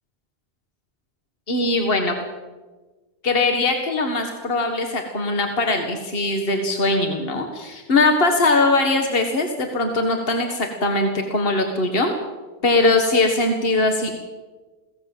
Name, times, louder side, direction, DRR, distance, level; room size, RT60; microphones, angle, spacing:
voice 1, 1.5-2.2 3.2-12.1 12.6-14.2, left 2 dB, 55° left, 4 dB, 2.0 m, -21 dB
22.0 x 17.5 x 7.4 m, 1.3 s
omnidirectional pair, 1.1 m